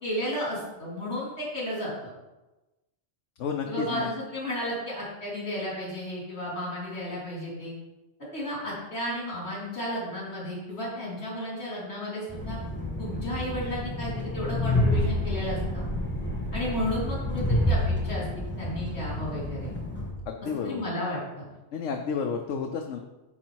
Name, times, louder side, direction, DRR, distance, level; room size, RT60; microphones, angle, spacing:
voice 1, 0.0-2.1 3.7-7.7 8.3-12.6 13.0-15.9 16.5-19.7 20.6-21.5, equal, 70° left, -5 dB, 3.0 m, -33 dB
voice 2, 3.4-4.1 20.3-20.8 21.7-23.0, left 6 dB, 90° left, 3 dB, 1.0 m, -31 dB
Train, 12.3-20.1, left 1 dB, 10° left, 1.3 m, -29 dB
9.9 x 4.3 x 4.6 m, 1.1 s
omnidirectional pair, 1.2 m